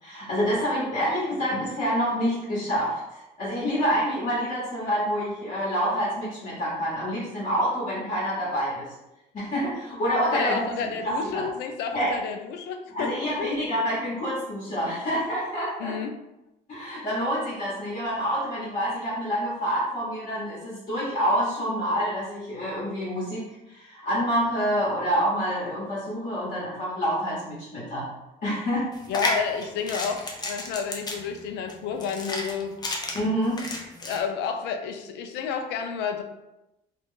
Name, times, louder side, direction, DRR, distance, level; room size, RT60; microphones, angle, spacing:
voice 1, 0.0-8.9 9.3-10.6 11.0-11.5 11.9-12.1 12.9-16.0 16.7-28.1 28.4-28.9 33.1-33.6, equal, 50° left, -9 dB, 1.2 m, -27 dB
voice 2, 10.3-13.1 13.4-13.6 15.8-16.2 29.1-32.8 34.0-36.2, left 6 dB, 85° left, 6 dB, 0.4 m, -30 dB
sound 1, 28.9-34.2, left 2 dB, 25° left, 0.6 m, -32 dB
2.4 x 2.3 x 3.7 m, 0.94 s
cardioid pair, 110°, 17 cm